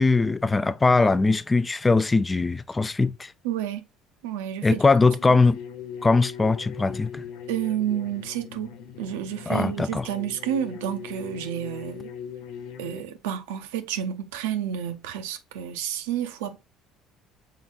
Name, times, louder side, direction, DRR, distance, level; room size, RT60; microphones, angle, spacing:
voice 1, 0.0-3.3 4.6-5.6 6.0-7.2 9.5-10.1, left 3 dB, 20° left, 0.3 m, -21 dB
voice 2, 3.4-3.8 4.2-4.8 5.3-5.4 7.5-12.1 12.8-16.6, right 10 dB, 80° right, 0.5 m, -30 dB
sound 1, 5.1-13.0, left 8 dB, 70° left, 0.6 m, -40 dB
5.6 x 4.0 x 2.3 m
hypercardioid pair, 70°, 0 cm